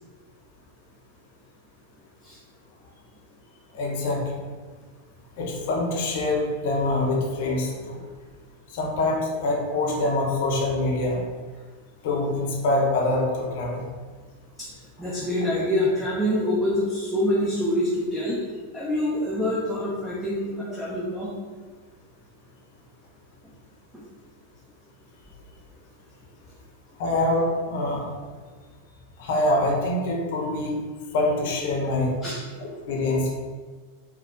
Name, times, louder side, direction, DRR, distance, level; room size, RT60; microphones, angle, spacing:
voice 1, 3.7-4.4 5.4-8.0 8.7-11.2 12.0-13.8 15.0-15.2 20.7-20.8 27.0-28.1 29.2-30.8 31.1-32.1 32.6-33.3, left 2 dB, 50° left, -1 dB, 0.8 m, -25 dB
voice 2, 15.0-18.4 18.7-21.3 23.9-24.0 32.2-32.4, left 1 dB, 5° right, -6 dB, 0.6 m, -26 dB
4.3 x 2.2 x 3.5 m, 1.5 s
figure-of-eight pair, 90°, 0 cm